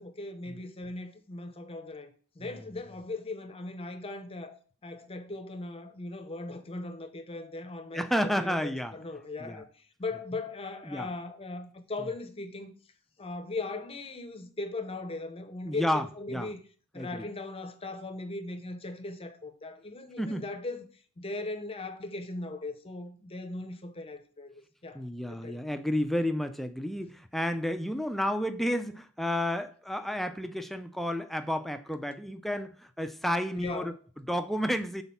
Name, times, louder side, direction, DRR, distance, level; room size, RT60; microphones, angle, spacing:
voice 1, 0.0-12.7 13.2-16.6 16.9-20.9 21.2-25.0 25.3-25.6 33.5-33.9, left 2 dB, 25° left, 0.7 m, -39 dB
voice 2, 7.9-8.9 9.4-9.6 10.9-11.1 15.6-16.5 17.0-17.3 20.2-20.4 24.9-35.0, equal, ahead, 0.4 m, -31 dB
6.1 x 4.0 x 5.6 m
head